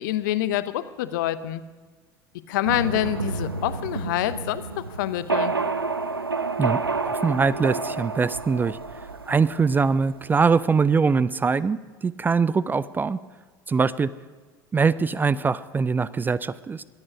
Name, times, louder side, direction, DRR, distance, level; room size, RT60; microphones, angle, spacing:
voice 1, 0.0-1.6 2.5-5.5, left 13 dB, 60° left, 14 dB, 0.8 m, -26 dB
sound 1, 2.6-10.3, right 4 dB, 85° right, 0.6 m, -29 dB
voice 2, 6.6-8.8 9.3-13.2 13.7-14.1 14.7-16.8, right 5 dB, 15° right, 18 dB, 0.4 m, -22 dB
22.0 x 8.7 x 6.1 m, 1.4 s
figure-of-eight pair, 75°, 12 cm